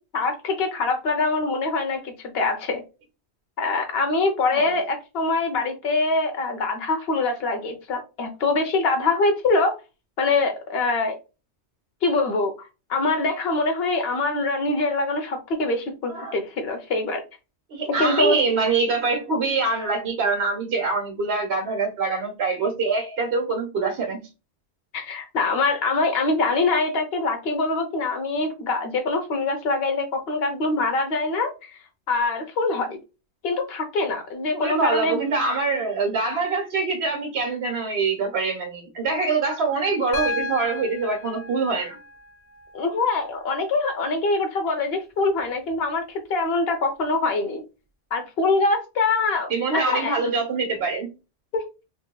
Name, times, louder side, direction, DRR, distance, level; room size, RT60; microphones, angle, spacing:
voice 1, 0.1-2.8 3.6-9.7 10.2-11.2 12.0-17.2 17.9-18.4 24.9-31.8 32.1-33.0 33.4-35.2 42.7-47.6 48.1-50.1 51.5-51.6, left 3 dB, 60° left, 1.0 m, -24 dB
voice 2, 17.7-24.3 34.5-42.0 49.5-51.1, right 4 dB, 65° right, 1.3 m, -24 dB
Piano, 40.1-44.1 45.7-45.8, left 2 dB, 15° left, 0.6 m, -35 dB
5.1 x 2.7 x 2.3 m
omnidirectional pair, 1.2 m